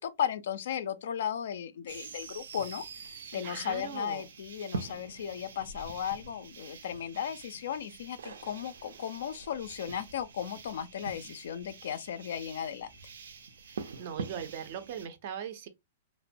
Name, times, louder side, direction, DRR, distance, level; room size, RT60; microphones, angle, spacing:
voice 1, 0.0-12.9, left 9 dB, 55° left, 0.3 m, -36 dB
sound 1, 1.9-15.1, right 4 dB, 90° right, 0.5 m, -45 dB
voice 2, 3.3-4.3 13.7-15.7, right 8 dB, 35° right, 0.4 m, -40 dB
2.9 x 2.1 x 2.5 m
hypercardioid pair, 180°, 0 cm